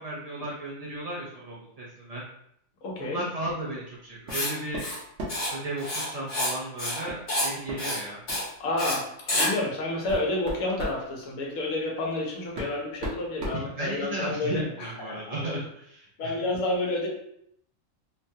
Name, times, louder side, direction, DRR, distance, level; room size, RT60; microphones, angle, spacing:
voice 1, 0.0-2.2 3.0-4.8 5.5-8.2 13.8-16.3, right 1 dB, 85° right, -5 dB, 0.3 m, -35 dB
voice 2, 2.8-3.2 8.6-15.6 16.2-17.1, left 2 dB, 80° left, -2 dB, 1.2 m, -30 dB
Writing, 4.3-4.5 4.8-5.0 5.3-5.5 5.8-6.5 6.8-7.0 7.3-7.5 7.8-8.0 8.3-8.5 8.8-9.0 9.3-9.5, left 1 dB, 45° left, 1.2 m, -28 dB
sound 1, 4.3-4.5 4.7-5.5 7.1-7.2 7.7-7.8 8.3-8.5 9.3-9.4 9.9-11.0 12.1-12.2 12.6-14.3, equal, 60° right, 1.0 m, -36 dB
3.1 x 2.2 x 2.6 m, 0.73 s
omnidirectional pair, 1.5 m